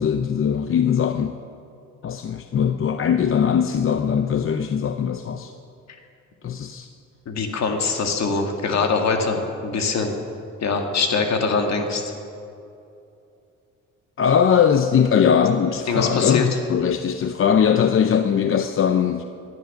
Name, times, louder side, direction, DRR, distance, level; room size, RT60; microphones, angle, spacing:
voice 1, 0.0-1.3 2.0-5.5 6.4-6.9 14.2-19.2, left 7 dB, 45° left, 8 dB, 0.7 m, -20 dB
voice 2, 7.3-10.1 10.6-12.1 15.7-16.5, left 4 dB, 60° left, 4 dB, 2.1 m, -23 dB
17.5 x 10.5 x 6.6 m, 2.6 s
cardioid pair, 90°, 30 cm